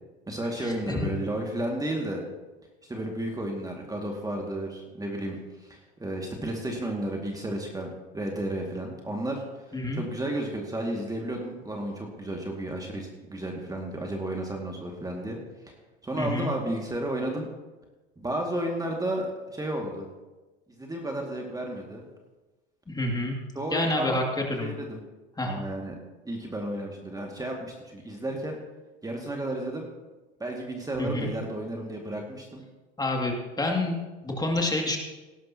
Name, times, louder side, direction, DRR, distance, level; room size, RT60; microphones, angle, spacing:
voice 1, 0.3-2.2 2.9-15.4 15.6-15.7 16.0-17.5 18.2-20.1 20.8-22.0 23.5-24.2 24.6-25.0 25.4-25.9 26.2-28.6 29.0-29.9 30.4-32.6, right 1 dB, 10° right, 1 dB, 2.1 m, -32 dB
voice 2, 16.2-16.5 22.9-23.4 23.7-24.2 24.5-24.7 25.4-25.6 31.0-31.3 33.0-35.0, left 2 dB, 10° left, 1 dB, 2.4 m, -28 dB
18.0 x 11.0 x 2.9 m, 1.2 s
hypercardioid pair, 85°, 31 cm